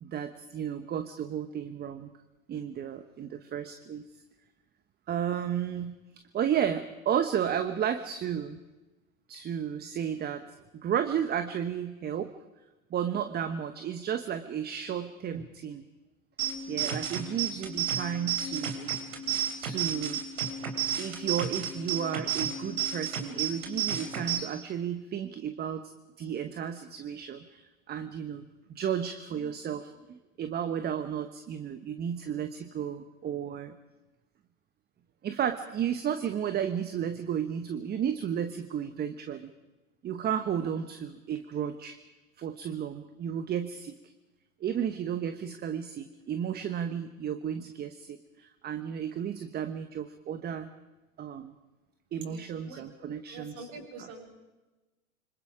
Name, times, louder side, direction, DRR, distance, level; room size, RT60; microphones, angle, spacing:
voice 1, 0.0-2.1 2.5-4.0 5.1-6.0 6.3-8.6 9.3-10.4 10.7-12.3 12.9-15.8 16.7-18.9 19.6-20.2 21.0-25.8 26.2-28.4 28.7-33.8 35.2-39.5 40.0-42.0 42.4-43.9 44.6-50.7 51.2-51.5 52.1-53.7, right 8 dB, 25° right, 10 dB, 1.1 m, -33 dB
sound 1, 16.4-24.4, right 8 dB, 70° right, 4.7 m, -32 dB
voice 2, 52.3-52.9 53.3-54.2, right 3 dB, 50° right, 1 dB, 7.6 m, -46 dB
27.0 x 25.0 x 5.0 m, 1.1 s
hypercardioid pair, 105°, 42 cm